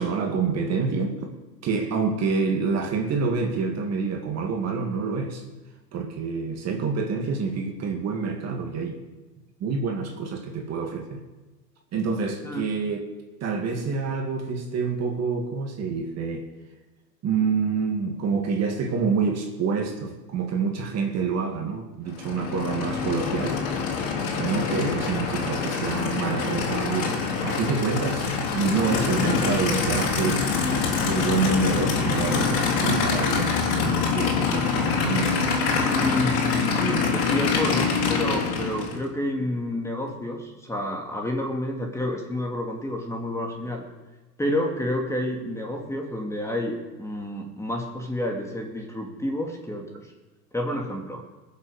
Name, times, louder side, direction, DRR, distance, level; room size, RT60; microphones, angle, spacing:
voice 1, 0.0-1.3 1.6-5.4 5.9-9.0 9.6-11.2 11.9-13.0 13.4-16.5 17.2-23.6 24.4-30.5 31.1-35.5, right 5 dB, 30° right, 2.1 m, -27 dB
Aircraft / Idling, 22.1-39.0, left 5 dB, 55° left, 3.6 m, -25 dB
voice 2, 35.7-36.4 36.7-43.8 44.4-50.1 50.5-51.2, left 1 dB, 5° left, 2.3 m, -29 dB
20.5 x 7.3 x 6.5 m
hypercardioid pair, 105°, 49 cm